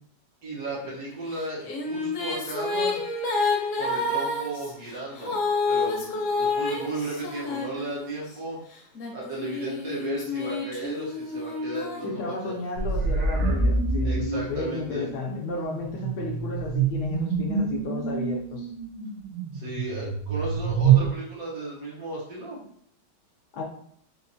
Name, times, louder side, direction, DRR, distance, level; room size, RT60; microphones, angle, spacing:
voice 1, 0.4-3.0 3.7-5.4 5.7-8.6 9.1-12.6 14.0-15.1 19.5-22.6, right 2 dB, 60° right, -5 dB, 1.3 m, -35 dB
Female singing, 1.3-8.3 9.0-12.7, left 3 dB, 55° left, 1.0 m, -29 dB
voice 2, 12.0-18.7 23.5-23.6, left 3 dB, 75° left, 1 dB, 1.1 m, -33 dB
sound 1, 12.8-21.1, right 5 dB, 85° right, 1.3 m, -26 dB
4.1 x 2.5 x 2.6 m, 0.63 s
omnidirectional pair, 1.9 m